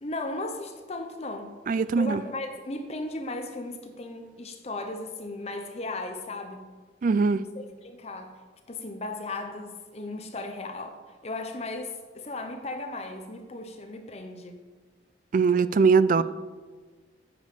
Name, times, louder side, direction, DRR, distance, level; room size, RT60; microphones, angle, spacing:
voice 1, 0.0-1.6 2.0-6.6 7.4-8.4 8.7-14.6 16.2-16.3, left 2 dB, 35° left, 6 dB, 0.7 m, -36 dB
voice 2, 1.7-2.2 7.0-7.4 15.3-16.2, right 5 dB, 45° right, 15 dB, 0.3 m, -21 dB
9.4 x 5.2 x 6.6 m, 1.4 s
head